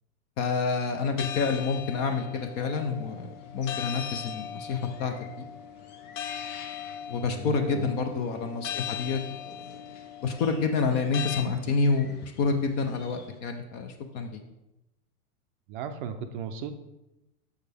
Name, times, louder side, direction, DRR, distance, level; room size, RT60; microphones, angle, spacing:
voice 1, 0.4-5.4 7.1-9.6 10.2-14.4, left 4 dB, 30° left, 6 dB, 0.4 m, -28 dB
sound 1, 1.2-11.4, left 9 dB, 55° left, 0.9 m, -39 dB
sound 2, 2.3-13.4, left 5 dB, 75° left, 1.3 m, -50 dB
voice 2, 7.3-7.9 15.7-16.7, right 7 dB, 35° right, 8 dB, 0.5 m, -36 dB
6.7 x 6.3 x 3.4 m, 0.93 s
hypercardioid pair, 140°, 45 cm